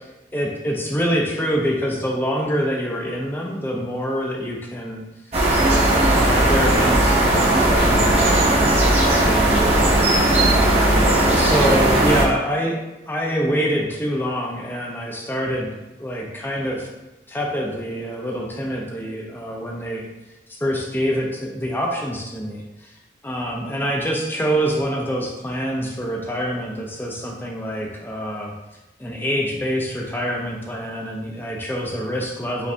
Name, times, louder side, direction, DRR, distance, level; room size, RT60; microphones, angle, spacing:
voice 1, 0.3-5.0 5.6-11.1 11.3-12.8 13.1-15.7 16.0-16.9 17.3-20.1 20.5-22.9 23.2-28.5 29.0-32.7, equal, 10° left, -1 dB, 0.5 m, -26 dB
sound 1, 5.3-12.2, right 1 dB, 35° right, 0.9 m, -17 dB
5.0 x 2.6 x 3.3 m, 1.0 s
head